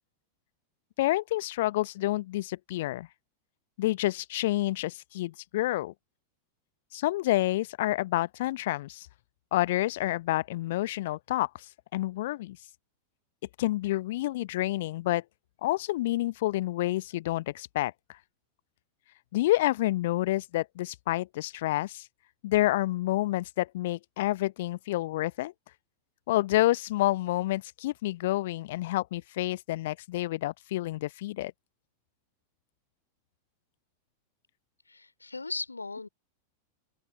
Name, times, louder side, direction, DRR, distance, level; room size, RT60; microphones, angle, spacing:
voice 1, 1.0-3.1 3.8-5.9 6.9-9.1 9.5-11.5 11.9-12.6 13.6-15.2 15.6-18.2 19.3-22.1 22.4-25.5 26.3-31.5, left 16 dB, 55° left, 0.9 m, -28 dB
voice 2, 34.9-36.1, left 3 dB, 80° left, 3.3 m, -37 dB
open air
figure-of-eight pair, 90°, 0 cm